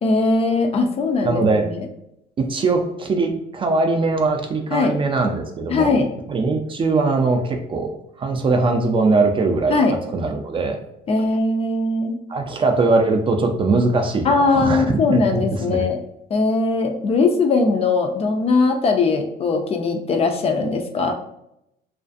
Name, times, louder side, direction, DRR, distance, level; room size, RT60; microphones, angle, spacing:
voice 1, 0.0-1.8 4.7-5.0 5.7-6.1 9.7-10.0 11.1-12.2 14.2-16.0 16.3-21.1, left 3 dB, 35° left, 4 dB, 0.4 m, -20 dB
voice 2, 1.2-1.7 2.4-6.0 6.3-7.9 8.2-9.8 10.1-10.8 12.3-15.9, right 3 dB, 30° right, 4 dB, 0.4 m, -21 dB
2.4 x 2.4 x 2.4 m, 0.80 s
cardioid pair, 110°, 17 cm